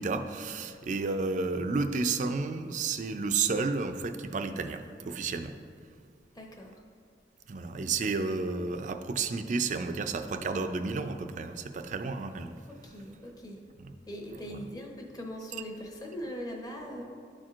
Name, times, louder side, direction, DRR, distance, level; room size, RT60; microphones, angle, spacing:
voice 1, 0.0-5.6 7.5-12.6 13.8-13.9 14.5-14.6, right 4 dB, 45° right, 7 dB, 0.4 m, -31 dB
voice 2, 6.3-6.7 12.7-13.6 14.1-17.0, equal, 20° left, 0 dB, 0.8 m, -41 dB
12.0 x 4.4 x 2.5 m, 2.2 s
head